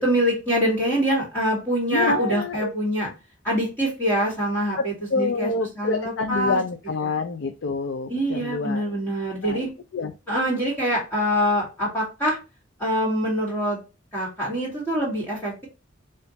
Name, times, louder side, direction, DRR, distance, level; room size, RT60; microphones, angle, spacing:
voice 1, 0.0-3.1 3.4-6.6 7.0-7.2 8.1-9.7 10.3-12.4 12.8-13.8 14.1-15.7, equal, 10° left, 1.7 m, -24 dB
voice 2, 1.9-2.7 4.8-9.0 9.4-9.7 9.9-10.1, left 3 dB, 75° left, 0.5 m, -27 dB
4.3 x 2.5 x 4.0 m
head